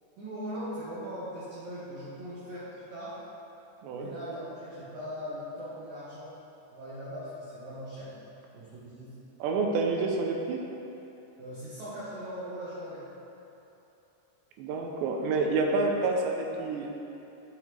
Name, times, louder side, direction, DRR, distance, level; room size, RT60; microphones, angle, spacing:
voice 1, 0.2-3.2 3.9-6.3 6.7-8.1 8.5-9.1 11.4-13.0, equal, 60° right, -13 dB, 2.9 m, -40 dB
voice 2, 9.4-10.7 14.6-16.9, right 3 dB, 85° right, 1 dB, 2.9 m, -28 dB
10.5 x 7.4 x 3.3 m, 3.0 s
omnidirectional pair, 5.2 m